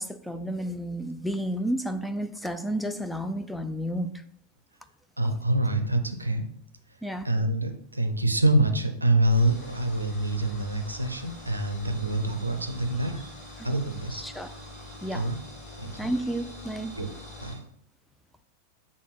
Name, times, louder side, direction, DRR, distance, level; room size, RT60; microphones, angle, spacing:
voice 1, 0.0-4.2 7.0-7.3 14.1-14.5 15.0-15.3 16.0-16.9, right 1 dB, ahead, 0.4 m, -31 dB
voice 2, 5.2-6.4 7.2-13.2 13.6-14.2 15.1-15.4 15.8-16.1 17.0-17.1 17.4-17.6, right 1 dB, 85° right, 0.6 m, -26 dB
sound 1, 9.3-17.6, left 1 dB, 40° left, 1.8 m, -44 dB
6.3 x 3.7 x 4.2 m
figure-of-eight pair, 90°, 0 cm